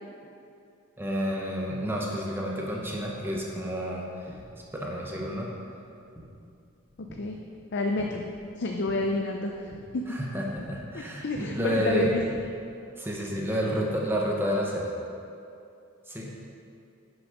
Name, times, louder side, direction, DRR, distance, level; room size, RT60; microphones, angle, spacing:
voice 1, 1.0-4.4 4.7-5.5 10.1-12.1 13.0-14.9 16.1-16.3, equal, 10° right, -2 dB, 0.9 m, -30 dB
sound 1, 3.1-12.5, equal, 10° left, 1.3 m, -50 dB
voice 2, 7.7-8.2 8.6-10.1 10.9-12.2, left 2 dB, 50° left, 2 dB, 0.5 m, -29 dB
10.5 x 6.3 x 5.1 m, 2.5 s
head